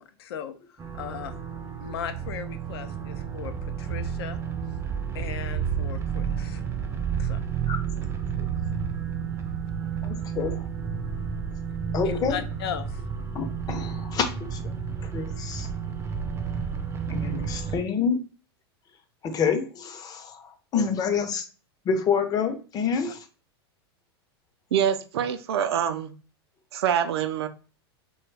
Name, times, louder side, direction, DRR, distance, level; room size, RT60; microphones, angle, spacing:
voice 1, 0.0-1.4 1.8-4.4 5.1-6.6 7.2-7.4 12.0-13.0, left 9 dB, 70° left, 0.5 m, -37 dB
sound 1, 0.8-17.8, right 7 dB, 20° right, 0.4 m, -31 dB
voice 2, 10.0-10.6 11.9-12.4 13.3-14.8 15.1-15.7 17.1-18.2 19.2-20.4 20.7-21.4 21.9-23.2, left 6 dB, 30° left, 0.6 m, -27 dB
voice 3, 24.7-26.1 26.7-27.5, right 9 dB, 75° right, 0.4 m, -25 dB
2.2 x 2.2 x 3.2 m
hypercardioid pair, 110°, 13 cm